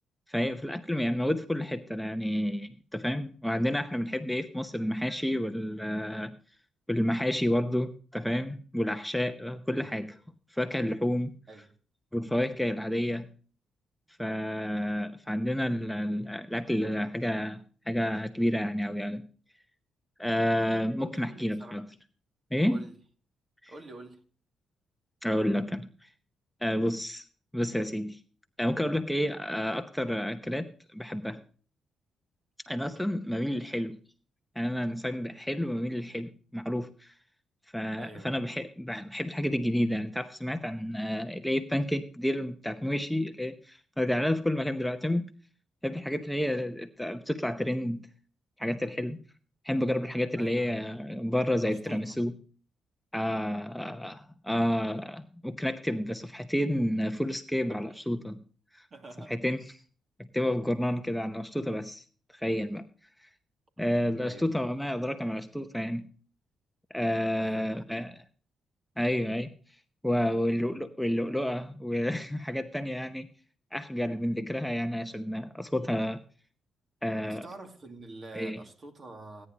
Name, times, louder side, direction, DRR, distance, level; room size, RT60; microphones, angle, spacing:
voice 1, 0.3-6.3 6.9-10.1 10.5-11.3 12.1-13.3 14.2-19.2 20.2-21.9 22.5-22.8 23.6-23.7 25.2-26.1 26.6-27.2 27.5-28.2 28.6-31.4 32.7-34.0 34.6-37.1 37.7-45.3 45.8-48.0 48.6-49.2 49.6-52.3 53.1-58.4 58.7-58.9 59.3-59.8 60.3-62.0 62.3-62.8 63.8-66.1 66.9-68.2 69.0-69.5 70.0-73.3 73.7-76.2 77.0-77.5 78.3-78.6, equal, 5° left, 0.8 m, -30 dB
voice 2, 21.0-21.8 22.7-23.0 23.7-24.2 33.6-33.7 38.0-38.3 50.4-50.7 51.6-52.2 57.7-57.8 58.9-59.3 64.2-64.5 67.4-68.1 77.3-79.5, right 2 dB, 45° right, 2.5 m, -46 dB
16.0 x 9.7 x 3.0 m
cardioid pair, 70°, 0 cm